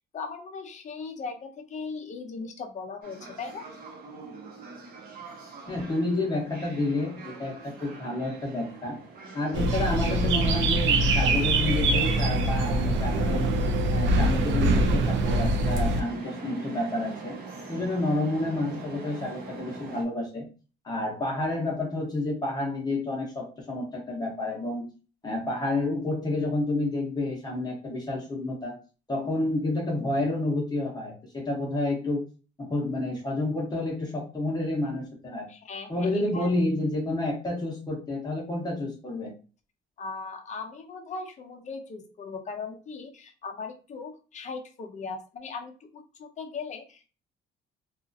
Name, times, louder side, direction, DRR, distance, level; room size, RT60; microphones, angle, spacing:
voice 1, 0.1-3.7 35.5-36.5 40.0-47.1, left 4 dB, 40° left, 5 dB, 0.6 m, -38 dB
sound 1, 3.0-20.0, right 3 dB, 50° right, 0.9 m, -42 dB
voice 2, 5.7-9.0 9.3-13.5 13.9-17.4 17.7-20.5 20.8-24.9 25.2-28.7 29.1-32.2 32.6-35.5 35.9-39.3, left 2 dB, 20° left, -3 dB, 0.9 m, -29 dB
sound 2, 9.5-16.0, right 2 dB, 70° right, 0.5 m, -24 dB
2.7 x 2.4 x 2.6 m, 0.35 s
cardioid pair, 125°, 20 cm